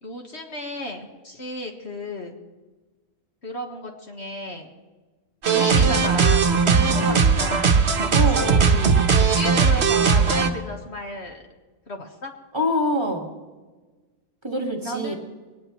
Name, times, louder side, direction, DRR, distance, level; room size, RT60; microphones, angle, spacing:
voice 1, 0.0-2.3 3.4-4.7 5.5-11.5 11.9-12.3 14.8-15.1, left 1 dB, 50° left, 2 dB, 1.6 m, -34 dB
sound 1, 5.4-10.5, right 5 dB, 50° right, 1.2 m, -18 dB
voice 2, 6.8-7.5 8.1-8.6 12.5-13.3 14.4-15.1, equal, 20° right, 0 dB, 1.8 m, -26 dB
21.5 x 18.5 x 3.1 m, 1.3 s
omnidirectional pair, 1.5 m